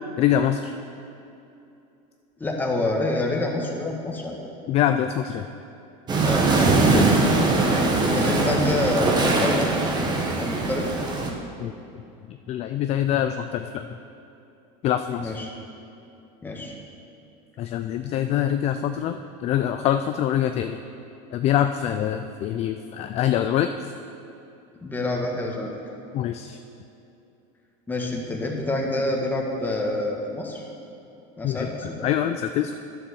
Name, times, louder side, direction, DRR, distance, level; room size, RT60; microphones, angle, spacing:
voice 1, 0.2-0.7 4.7-5.5 6.9-7.2 11.6-11.7 12.3-13.8 14.8-15.3 17.6-20.8 21.3-23.9 26.1-26.6 31.4-31.7 32.0-32.7, left 10 dB, 40° left, 8 dB, 0.4 m, -24 dB
voice 2, 2.4-4.4 6.2-6.5 8.0-9.6 10.4-10.9 15.2-15.5 16.4-16.7 24.8-25.7 27.9-30.6 31.4-32.1, left 2 dB, 10° left, 0 dB, 1.4 m, -27 dB
sound 1, 6.1-11.3, right 3 dB, 25° right, 1.2 m, -21 dB
10.5 x 7.0 x 6.4 m, 2.7 s
cardioid pair, 140°, 17 cm